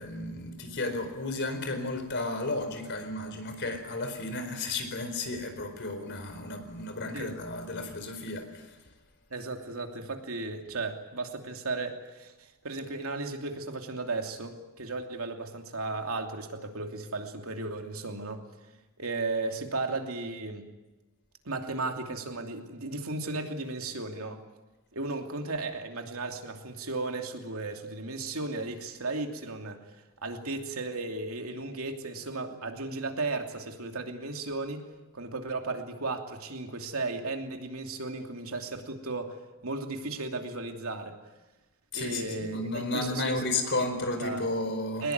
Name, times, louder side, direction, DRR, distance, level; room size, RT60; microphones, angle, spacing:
voice 1, 0.0-8.8 41.9-45.1, left 2 dB, 55° left, 7 dB, 4.5 m, -33 dB
voice 2, 9.3-18.4 19.0-20.7 21.4-24.4 24.9-30.0 30.2-34.9 35.1-41.2 41.9-43.4 44.2-44.4 45.0-45.1, right 3 dB, 70° right, 4 dB, 2.9 m, -35 dB
22.0 x 20.5 x 9.5 m, 1.1 s
head